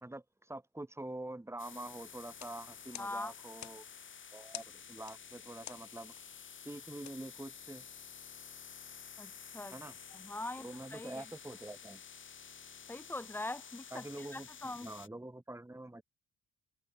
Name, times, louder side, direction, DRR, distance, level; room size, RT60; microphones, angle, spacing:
voice 1, 0.0-3.9 4.3-6.1 6.7-7.9 9.7-10.0 10.6-12.0 13.9-16.0, right 1 dB, 10° right, 3.5 m, -46 dB
sound 1, 1.6-15.1, left 7 dB, 40° left, 1.6 m, -51 dB
sound 2, 2.3-8.0, left 11 dB, 65° left, 1.9 m, -53 dB
voice 2, 3.0-3.3 9.2-9.7 10.2-11.2 12.9-14.0 14.3-14.9, left 2 dB, 5° left, 0.6 m, -42 dB
cardioid pair, 90°, 30 cm